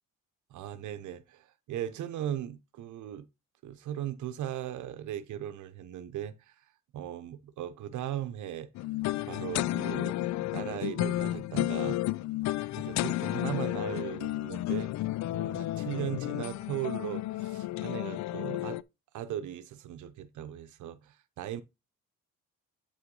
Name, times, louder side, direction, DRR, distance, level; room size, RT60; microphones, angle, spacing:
voice 1, 0.5-3.3 3.6-6.5 6.9-8.7 9.2-12.0 12.8-15.1 15.3-18.8 19.1-21.6, right 11 dB, 75° right, 0.8 m, -38 dB
sound 1, 8.7-18.8, left 16 dB, 65° left, 0.4 m, -32 dB
8.7 x 5.8 x 3.8 m
cardioid pair, 90°, 30 cm